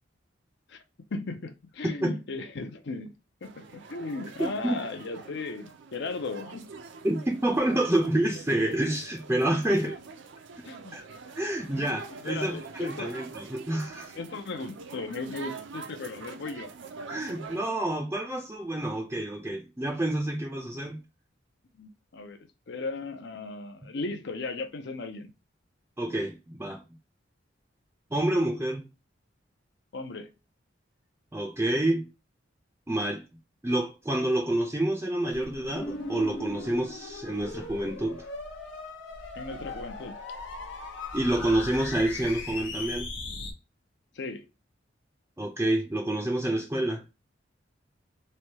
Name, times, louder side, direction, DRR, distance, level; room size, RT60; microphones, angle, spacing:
voice 1, 1.1-3.1 3.4-6.7 9.7-9.8 10.6-11.2 11.7-13.1 14.2-16.7 21.7-25.3 29.9-30.3 39.4-40.2 44.1-44.5, left 3 dB, 65° left, 0.6 m, -37 dB
sound 1, 3.4-17.7, right 4 dB, 70° right, 0.5 m, -45 dB
voice 2, 4.4-4.8 7.0-10.0 10.9-11.0 11.4-14.1 17.1-21.0 26.0-26.8 28.1-28.9 31.3-32.1 32.9-33.2 33.6-38.3 41.1-43.1 45.4-47.0, right 1 dB, 15° right, 0.5 m, -28 dB
sound 2, 35.3-43.5, left 2 dB, 85° left, 0.9 m, -38 dB
3.2 x 2.3 x 2.7 m
head